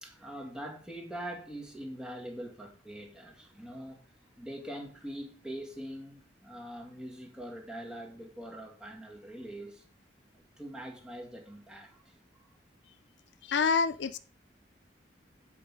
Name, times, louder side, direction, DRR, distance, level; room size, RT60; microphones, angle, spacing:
voice 1, 0.0-4.0 4.4-9.8 10.3-12.2, right 1 dB, 5° right, 2.0 m, -43 dB
voice 2, 13.4-14.2, left 5 dB, 75° left, 0.5 m, -27 dB
8.4 x 4.8 x 5.6 m
head